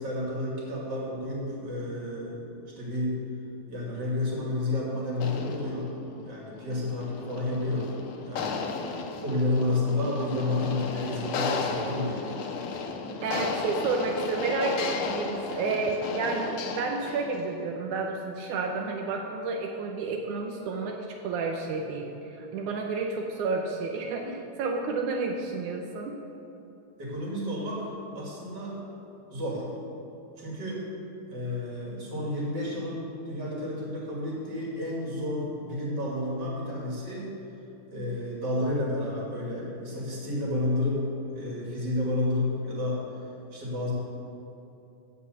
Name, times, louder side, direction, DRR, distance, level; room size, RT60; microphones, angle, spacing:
voice 1, 0.0-2.4 2.8-3.2 3.7-5.9 6.2-7.9 8.2-8.7 9.2-12.3 27.0-28.8 29.3-29.6 30.4-30.8 31.3-37.3 37.9-41.0 41.3-43.0 43.5-43.9, left 1 dB, 35° right, -4 dB, 3.1 m, -30 dB
sound 1, 5.1-17.5, left 5 dB, 85° left, 1.2 m, -34 dB
voice 2, 13.2-26.2, right 4 dB, 85° right, 2 dB, 2.2 m, -31 dB
15.5 x 5.3 x 6.7 m, 2.9 s
omnidirectional pair, 3.5 m